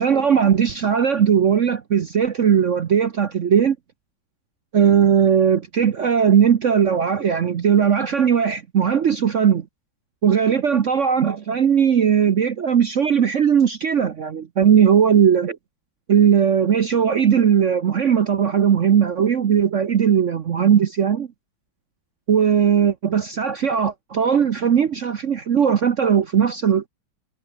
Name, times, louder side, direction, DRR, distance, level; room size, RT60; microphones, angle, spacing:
voice 1, 0.0-3.8 4.7-9.6 10.2-15.6 16.1-21.3 22.3-26.9, right 8 dB, 50° right, 0.9 m, -18 dB
omnidirectional pair, 2.1 m